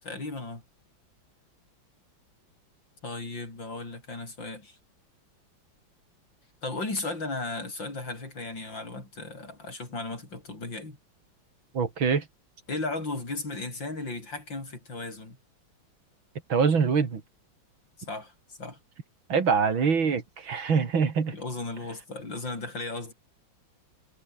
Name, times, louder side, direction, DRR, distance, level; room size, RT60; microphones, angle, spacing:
voice 1, 0.0-0.6 3.0-4.8 6.6-11.0 12.7-15.4 18.1-18.8 21.3-23.1, left 2 dB, 65° left, 7.0 m, -35 dB
voice 2, 11.7-12.3 16.5-17.2 19.3-21.4, right 5 dB, 80° right, 3.4 m, -24 dB
omnidirectional pair, 2.1 m